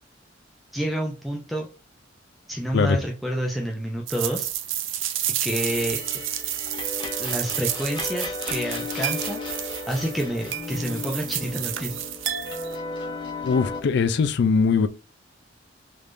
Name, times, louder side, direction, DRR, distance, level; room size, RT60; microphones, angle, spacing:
voice 1, 0.7-1.7 2.5-4.5 5.4-6.0 7.2-9.4 9.9-12.0, equal, ahead, 0.5 m, -28 dB
sound 1, 4.1-12.8, right 11 dB, 85° right, 0.5 m, -30 dB
sound 2, 5.7-13.8, left 3 dB, 25° left, 1.0 m, -35 dB
voice 2, 13.4-14.9, left 5 dB, 65° left, 0.4 m, -21 dB
3.4 x 3.2 x 2.5 m
head